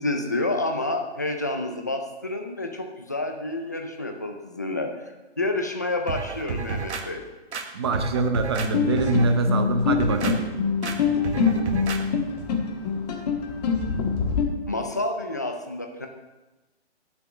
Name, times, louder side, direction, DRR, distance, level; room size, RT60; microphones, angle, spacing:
voice 1, 0.0-7.2 14.7-16.1, left 2 dB, 15° left, 3 dB, 0.4 m, -29 dB
sound 1, 6.1-7.0 7.5-8.7 9.0-9.3 9.8-10.4 10.8-11.0 11.2-12.0 12.4-12.5, right 5 dB, 75° right, 1.5 m, -31 dB
voice 2, 7.7-10.4, right 3 dB, 25° right, 6 dB, 0.7 m, -24 dB
sound 2, 8.7-14.4, left 6 dB, 35° left, 1.4 m, -25 dB
8.8 x 7.0 x 7.1 m, 1.1 s
hypercardioid pair, 165°, 34 cm